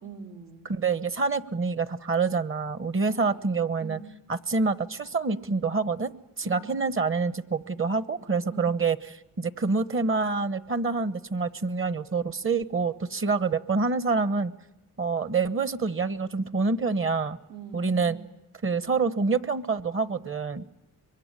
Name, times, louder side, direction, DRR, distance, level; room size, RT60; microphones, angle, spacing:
voice 1, 0.0-0.7 3.1-3.5 3.8-4.1 6.4-6.8 8.5-8.8 17.5-18.3, right 6 dB, 85° right, 0 dB, 3.8 m, -43 dB
voice 2, 0.7-4.0 4.3-6.1 6.4-9.0 9.4-14.5 15.0-17.4 17.7-18.2 18.6-20.6, right 4 dB, 35° right, 14 dB, 1.1 m, -26 dB
24.5 x 22.5 x 9.8 m, 0.97 s
cardioid pair, 85°, 37 cm